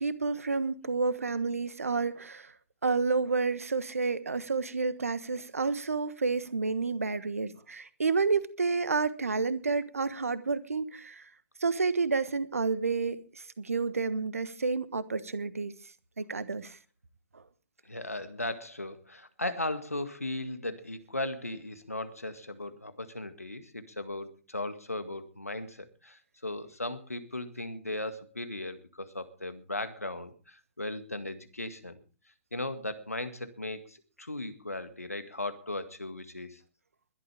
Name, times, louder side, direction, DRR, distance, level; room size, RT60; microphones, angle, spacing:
voice 1, 0.0-2.5 2.8-11.2 11.6-15.7 16.2-16.8 17.3-17.4, right 4 dB, 75° right, 1.3 m, -30 dB
voice 2, 17.9-32.0 32.5-36.6, left 2 dB, 90° left, 1.8 m, -37 dB
21.5 x 12.0 x 3.5 m
figure-of-eight pair, 110°, 8 cm